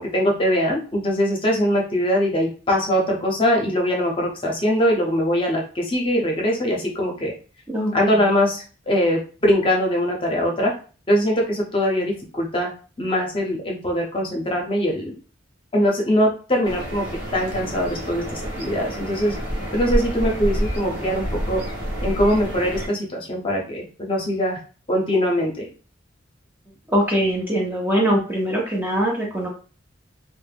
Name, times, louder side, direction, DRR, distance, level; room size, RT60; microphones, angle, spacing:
voice 1, 0.0-7.3 7.9-10.7 11.1-12.7 13.0-15.1 15.7-17.0 17.3-19.3 19.7-21.6 22.0-24.6 24.9-25.7, equal, 30° left, -1 dB, 0.7 m, -22 dB
voice 2, 7.7-8.3 26.9-29.5, equal, 10° right, -3 dB, 0.5 m, -22 dB
sound 1, 16.6-22.9, equal, 75° right, 0.9 m, -28 dB
2.1 x 2.0 x 3.3 m, 0.37 s
head